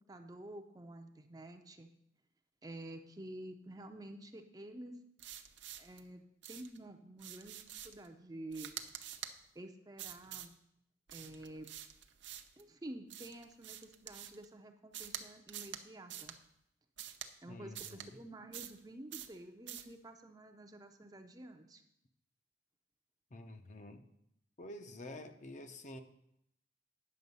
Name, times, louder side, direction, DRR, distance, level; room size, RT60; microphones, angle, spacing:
voice 1, 0.1-1.9 2.6-5.0 5.8-6.2 6.5-8.7 9.5-10.5 11.1-11.7 12.6-16.3 17.4-21.8, right 1 dB, 20° right, 5 dB, 0.5 m, -50 dB
sound 1, 5.2-6.0 6.4-6.8 7.2-8.1 8.5-9.3 10.0-10.5 11.1-12.6 13.1-14.4 14.9-15.2 15.5-15.8 16.1-16.4 17.0-17.3 17.7-18.1 18.5-18.8 19.1-19.3 19.7-19.9, right 11 dB, 65° right, 0.7 m, -47 dB
voice 2, 17.5-18.1 23.3-24.0 24.6-26.0, left 1 dB, 35° left, 7 dB, 0.6 m, -49 dB
9.7 x 6.9 x 5.4 m, 0.77 s
head